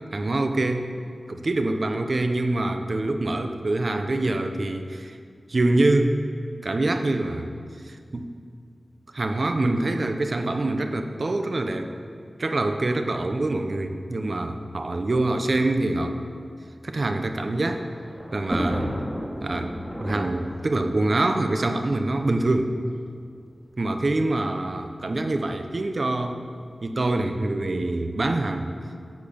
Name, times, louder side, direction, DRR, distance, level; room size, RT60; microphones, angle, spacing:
voice 1, 0.1-0.9 1.3-5.2 5.5-6.1 6.6-7.5 7.8-8.3 9.1-11.9 12.4-16.1 16.8-17.8 18.3-18.9 19.4-22.7 23.8-26.4 26.8-28.7, right 2 dB, 60° right, 6 dB, 0.9 m, -25 dB
Thunder, 17.1-22.4 23.2-23.3 23.5-23.6 24.7-25.0, equal, 10° right, 2.4 m, -34 dB
10.5 x 8.4 x 7.1 m, 2.2 s
wide cardioid pair, 70°, 0 cm